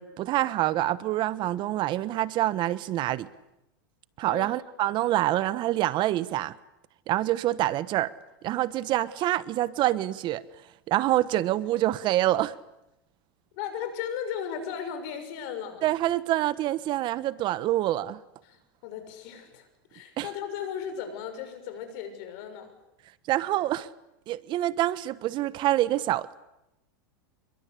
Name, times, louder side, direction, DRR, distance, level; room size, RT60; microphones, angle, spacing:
voice 1, 0.0-3.3 4.2-6.6 7.1-8.1 8.4-10.4 10.9-12.5 15.8-18.2 20.2-20.3 23.3-23.9 24.3-26.4, right 14 dB, 40° right, 1.1 m, -26 dB
voice 2, 13.5-15.9 18.4-22.7, left 8 dB, 60° left, 6.8 m, -36 dB
28.5 x 22.0 x 8.4 m
hypercardioid pair, 120°, 12 cm